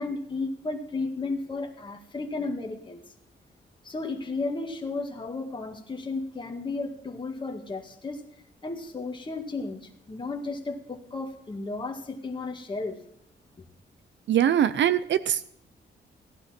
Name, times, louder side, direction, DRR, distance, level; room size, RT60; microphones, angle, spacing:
voice 1, 0.0-3.0 3.8-8.2 8.6-13.0, left 3 dB, 25° left, 2 dB, 1.9 m, -33 dB
voice 2, 14.3-15.4, right 10 dB, 70° right, 13 dB, 0.6 m, -22 dB
16.0 x 11.5 x 4.4 m, 0.71 s
cardioid pair, 130°, 19 cm